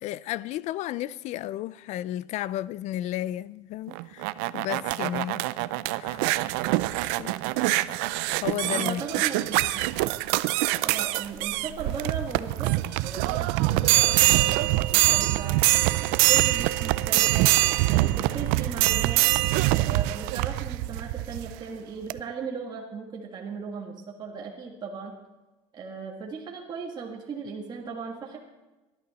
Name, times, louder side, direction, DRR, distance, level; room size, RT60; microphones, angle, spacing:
voice 1, 0.0-5.5 6.0-6.2 7.2-7.3 8.4-9.2, left 13 dB, 55° left, 0.4 m, -33 dB
sound 1, 3.9-21.5 22.1-22.2, right 18 dB, 80° right, 0.5 m, -24 dB
voice 2, 8.7-9.9 10.8-15.6 16.0-17.5 17.8-19.3 19.8-25.2 25.7-28.4, right 5 dB, 30° right, 1.7 m, -37 dB
18.5 x 11.5 x 4.1 m
cardioid pair, 130°, 14 cm